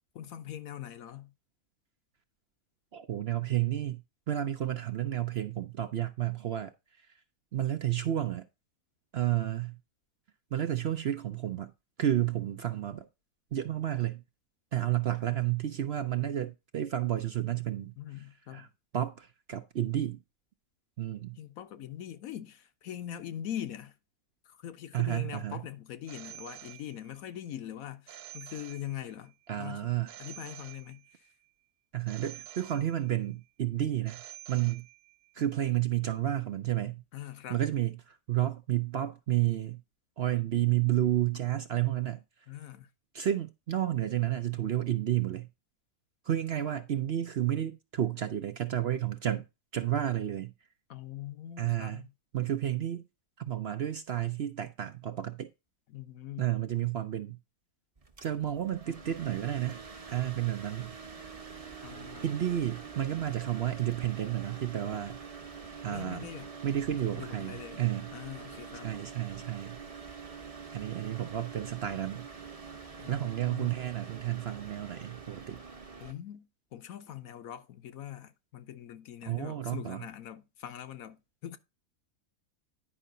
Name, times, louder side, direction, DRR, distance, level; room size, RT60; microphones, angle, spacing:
voice 1, 0.1-1.3 18.0-18.7 21.4-23.9 24.4-29.9 30.2-31.3 37.1-37.6 42.5-42.9 50.9-52.1 55.9-56.5 61.8-62.4 65.9-66.5 67.1-67.8 68.1-68.9 73.0-73.7 76.0-81.6, left 11 dB, 70° left, 1.2 m, -42 dB
voice 2, 2.9-4.0 4.3-6.7 7.5-8.4 9.1-9.8 10.5-11.7 12.0-13.1 13.5-14.2 14.7-18.7 18.9-20.2 21.0-21.4 24.9-25.6 29.5-30.1 31.9-34.2 34.5-34.9 35.3-37.0 37.5-39.8 40.2-42.2 43.1-45.5 46.2-49.4 49.7-50.5 51.6-52.0 52.3-53.1 53.4-55.5 56.4-57.4 58.2-59.8 60.1-61.0 62.2-65.2 65.8-66.3 66.6-68.1 68.8-69.8 70.7-72.3 73.1-75.6 79.3-80.0, right 12 dB, 55° right, 0.7 m, -31 dB
Telephone, 26.1-27.3 28.1-29.3 30.1-31.3 32.1-33.3 34.1-35.3, right 13 dB, 85° right, 1.2 m, -49 dB
sound 1, 58.0-76.1, right 5 dB, 25° right, 1.0 m, -46 dB
10.0 x 5.5 x 3.8 m
omnidirectional pair, 1.6 m